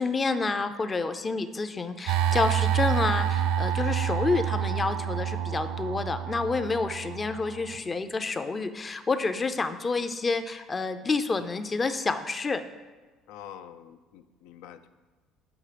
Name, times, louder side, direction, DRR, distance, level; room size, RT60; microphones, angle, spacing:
voice 1, 0.0-12.6, left 3 dB, 30° left, 10 dB, 0.5 m, -29 dB
sound 1, 2.1-7.8, right 9 dB, 80° right, 0.4 m, -28 dB
voice 2, 13.3-14.9, left 10 dB, 85° left, 11 dB, 0.4 m, -46 dB
7.2 x 5.5 x 5.0 m, 1.3 s
supercardioid pair, 90°, 0 cm